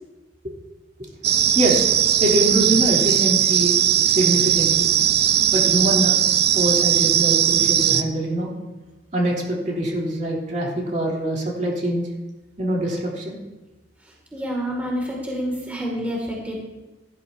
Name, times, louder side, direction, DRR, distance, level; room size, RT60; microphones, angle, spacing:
sound 1, 1.2-8.0, right 10 dB, 60° right, 0.6 m, -19 dB
voice 1, 1.5-1.9 2.2-3.8 4.0-4.9 5.5-6.2 6.5-8.5 9.1-12.1 12.6-13.4, right 1 dB, 45° right, -3 dB, 3.0 m, -23 dB
voice 2, 14.0-16.6, equal, 10° right, -2 dB, 2.3 m, -28 dB
17.5 x 12.0 x 2.7 m, 1.1 s
head